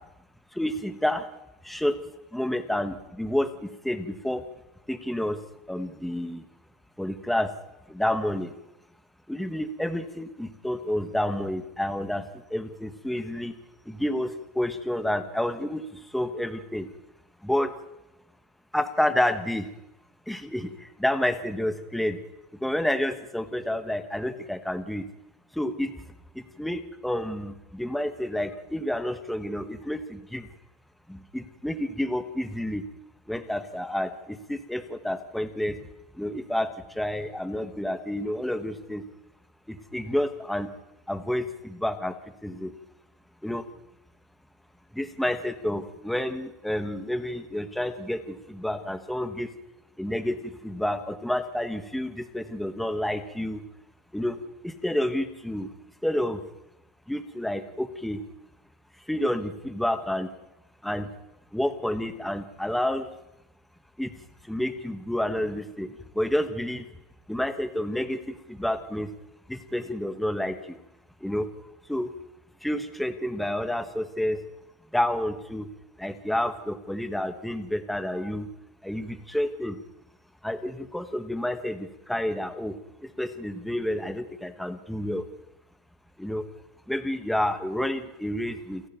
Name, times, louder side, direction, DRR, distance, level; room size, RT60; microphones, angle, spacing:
voice 1, 0.5-1.2 1.6-2.0 2.3-4.4 4.9-5.4 5.7-6.4 7.0-7.5 7.9-8.5 9.3-12.2 12.5-13.5 13.9-15.8 16.1-16.9 17.4-17.7 18.7-19.7 20.3-22.2 22.6-25.0 25.6-25.9 26.6-30.5 31.1-32.8 33.3-35.8 36.2-36.7 36.9-39.0 39.7-40.7 41.1-42.1 42.4-42.7 43.4-43.6 44.9-48.2 48.5-49.5 50.0-53.6 54.1-54.4 54.6-55.7 56.0-56.4 57.1-58.2 59.1-60.3 60.8-61.1 61.5-63.1 64.0-64.1 64.5-65.9 66.1-66.8 67.3-69.1 69.5-70.8 71.2-71.5 71.9-72.1 72.6-74.4 74.9-75.7 76.0-78.5 78.8-79.8 80.4-82.7 83.0-85.2 86.2-86.4 86.9-88.8, left 1 dB, ahead, 9 dB, 1.2 m, -29 dB
28.5 x 11.5 x 9.3 m, 0.90 s
cardioid pair, 160°, 6 cm